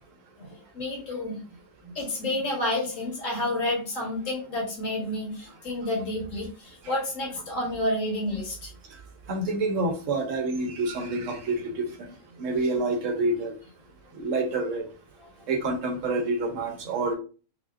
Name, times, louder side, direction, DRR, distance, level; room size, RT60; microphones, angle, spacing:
voice 1, 0.4-1.4 1.8-8.7, left 1 dB, 70° left, -2 dB, 1.6 m, -30 dB
voice 2, 9.3-12.1 12.4-13.5 14.1-14.8 15.5-17.1, right 2 dB, 70° right, 4 dB, 1.0 m, -27 dB
3.4 x 2.4 x 2.4 m, 0.36 s
omnidirectional pair, 1.4 m